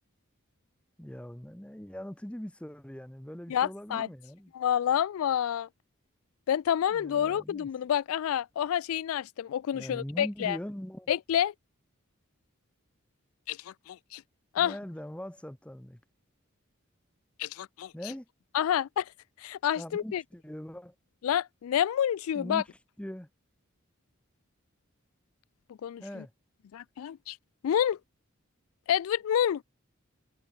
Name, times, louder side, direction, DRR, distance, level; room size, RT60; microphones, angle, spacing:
voice 1, 1.0-4.5 6.9-7.7 9.7-11.1 14.6-16.0 17.9-18.3 19.8-20.9 22.3-22.7 23.0-23.3 26.0-26.3, equal, 5° left, 0.7 m, -41 dB
voice 2, 3.5-4.1 4.5-5.7 6.5-10.6 11.1-11.5 13.5-14.2 14.5-14.7 17.4-17.9 18.5-19.1 19.4-20.2 21.2-22.6 25.8-26.2 26.7-27.4 27.6-28.0 28.9-29.6, left 9 dB, 80° left, 0.3 m, -28 dB
head